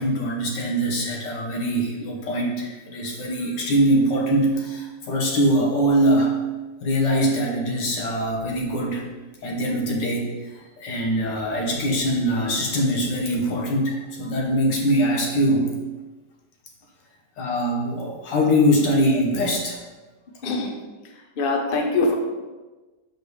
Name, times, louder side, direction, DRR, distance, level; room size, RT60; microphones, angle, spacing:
voice 1, 0.0-6.4 6.8-9.0 9.4-15.7 17.4-19.8, equal, 75° left, -1 dB, 1.8 m, -22 dB
voice 2, 20.4-20.8 21.4-22.1, left 3 dB, 45° left, 2 dB, 0.7 m, -23 dB
6.6 x 5.0 x 3.2 m, 1.2 s
omnidirectional pair, 1.9 m